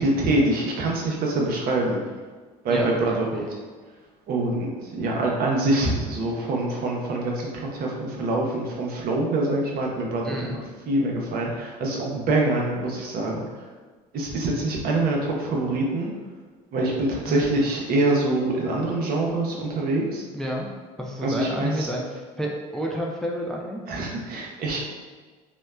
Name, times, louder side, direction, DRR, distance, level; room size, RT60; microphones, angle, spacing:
voice 1, 0.0-2.0 2.6-3.4 4.3-13.5 14.1-16.1 16.7-20.2 21.2-21.9 23.9-24.8, right 2 dB, 55° right, -2 dB, 0.7 m, -25 dB
voice 2, 2.7-3.2 10.2-10.6 17.3-17.5 20.3-20.7 21.0-23.8, equal, 5° left, -1 dB, 0.3 m, -30 dB
2.9 x 2.1 x 2.2 m, 1.4 s
hypercardioid pair, 70°, 19 cm